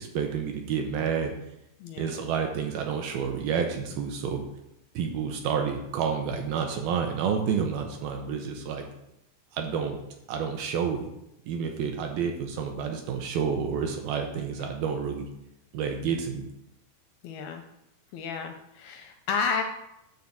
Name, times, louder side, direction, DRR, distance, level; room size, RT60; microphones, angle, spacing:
voice 1, 0.0-1.3 2.0-4.4 5.0-8.9 9.5-10.0 10.3-11.1 11.5-15.3 15.7-16.5, right 6 dB, 75° right, 4 dB, 2.3 m, -29 dB
voice 2, 1.8-2.3 9.7-10.0 17.2-17.6 18.1-19.6, left 5 dB, 85° left, 5 dB, 2.2 m, -32 dB
9.6 x 4.0 x 7.2 m, 0.83 s
omnidirectional pair, 4.8 m